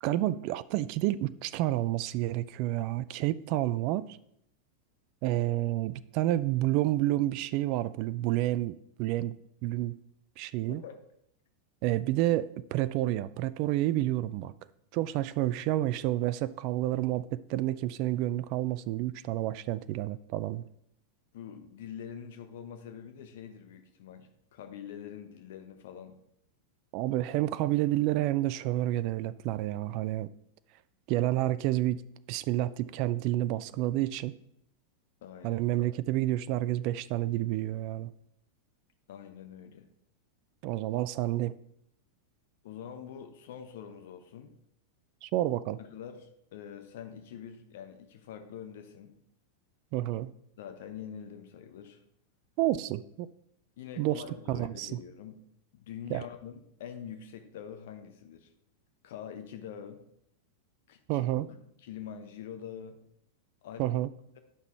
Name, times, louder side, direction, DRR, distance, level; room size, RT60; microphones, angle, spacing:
voice 1, 0.0-4.2 5.2-9.4 9.6-10.0 10.4-10.8 11.8-14.5 14.9-20.6 26.9-30.3 31.1-32.0 32.3-34.4 35.4-38.1 40.6-41.6 45.2-45.8 49.9-50.3 52.6-53.3 54.0-54.2 54.5-54.9 56.1-56.2 61.1-61.5 63.8-64.1, right 15 dB, 45° right, 16 dB, 0.4 m, -29 dB
voice 2, 21.3-26.1 35.2-35.6 39.1-39.9 42.6-44.5 45.8-49.2 50.6-52.0 53.8-55.4 55.7-58.5 59.0-60.0 60.9-63.0 63.6-63.8, left 8 dB, 55° left, 7 dB, 0.9 m, -45 dB
9.6 x 5.9 x 4.4 m, 0.74 s
figure-of-eight pair, 90°, 0 cm